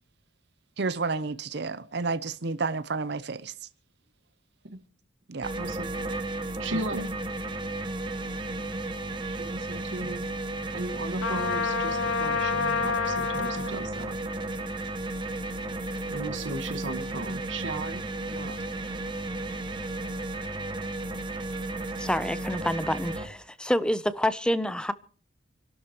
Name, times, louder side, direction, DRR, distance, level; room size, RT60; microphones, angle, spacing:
voice 1, 0.8-3.5 5.3-5.5 6.7-7.0, right 4 dB, 60° right, 0.7 m, -31 dB
sound 1, 5.4-23.3, right 2 dB, 25° right, 1.1 m, -34 dB
voice 2, 5.5-5.9 6.6-7.0 9.3-10.2 10.7-14.2 16.1-18.6, right 2 dB, 85° right, 1.6 m, -36 dB
Trumpet, 11.2-13.7, left 5 dB, 85° left, 0.7 m, -28 dB
voice 3, 22.0-24.9, left 1 dB, 5° left, 0.6 m, -27 dB
28.0 x 12.0 x 3.0 m
head